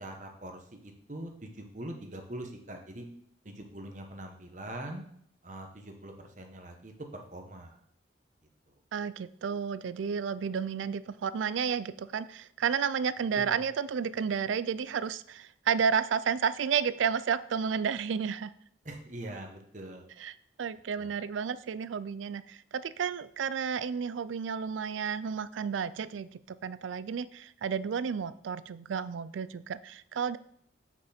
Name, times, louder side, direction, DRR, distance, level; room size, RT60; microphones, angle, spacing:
voice 1, 0.0-3.1 3.4-5.0 5.4-7.8 8.7-8.8 13.4-13.6 18.8-20.1 21.0-21.1, right 1 dB, 40° right, 3 dB, 1.2 m, -43 dB
voice 2, 8.9-18.5 20.2-30.4, right 7 dB, 90° right, 16 dB, 0.4 m, -32 dB
8.1 x 6.1 x 4.3 m, 0.65 s
head